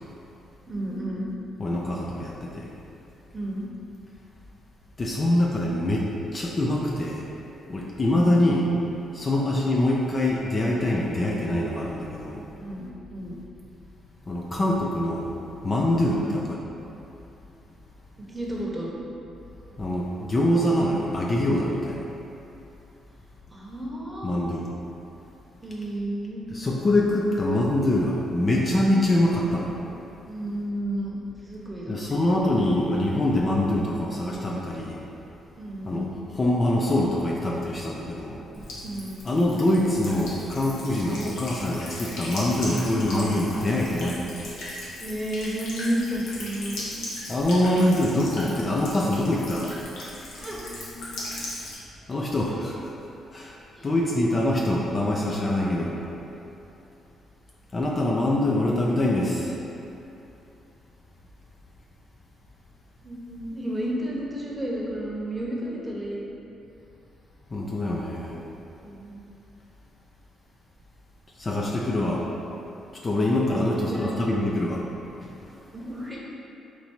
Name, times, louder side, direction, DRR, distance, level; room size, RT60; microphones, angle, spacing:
voice 1, 0.7-1.3 3.3-3.7 12.6-12.9 13.1-13.4 16.1-16.4 18.3-19.0 23.5-24.4 25.6-26.5 30.3-31.2 31.4-31.9 35.6-36.1 38.5-39.2 41.1-41.4 45.0-46.9 50.3-50.7 53.7-53.9 63.0-66.3 68.8-69.2 73.4-74.1 75.7-76.2, right 1 dB, 10° right, -5 dB, 0.9 m, -32 dB
voice 2, 1.6-2.7 5.0-7.2 7.7-8.7 9.1-12.4 14.3-15.3 15.6-16.6 19.8-22.0 24.2-24.7 26.5-29.7 31.9-35.0 35.9-36.1 36.4-38.4 39.2-44.2 47.3-49.7 52.1-52.8 53.3-53.5 53.8-55.9 57.7-59.5 67.5-68.4 71.4-72.2 73.0-74.8, left 1 dB, 30° left, -3 dB, 0.4 m, -24 dB
Buzz / Water tap faucet / Trickle dribble, 38.5-51.7, left 1 dB, 85° left, 1.0 m, -38 dB
4.4 x 2.7 x 4.4 m, 2.9 s
cardioid pair, 90°, 0 cm